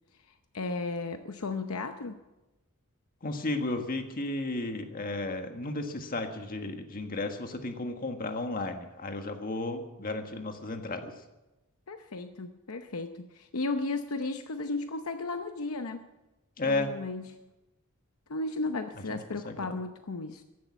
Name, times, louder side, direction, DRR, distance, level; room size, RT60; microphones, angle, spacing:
voice 1, 0.3-2.2 11.9-16.0 16.7-17.4 18.3-20.4, left 3 dB, 70° left, 7 dB, 0.8 m, -34 dB
voice 2, 3.2-11.1 16.6-16.9 19.1-19.2 19.4-19.7, left 2 dB, 40° left, 5 dB, 1.6 m, -33 dB
15.0 x 11.5 x 7.3 m, 1.0 s
head